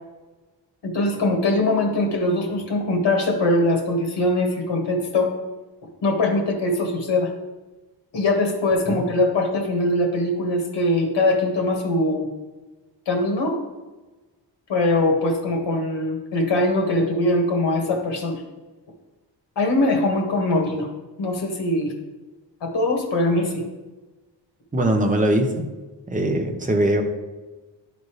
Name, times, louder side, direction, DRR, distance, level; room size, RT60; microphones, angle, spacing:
voice 1, 0.8-5.3 6.0-7.3 8.1-12.3 13.1-13.6 14.7-18.4 19.6-20.9 21.2-21.9 22.6-23.6, left 2 dB, 65° left, 2 dB, 1.8 m, -22 dB
voice 2, 24.7-25.7 26.1-27.0, right 1 dB, 15° right, 3 dB, 0.9 m, -21 dB
12.0 x 4.1 x 3.3 m, 1.2 s
wide cardioid pair, 130°, 45 cm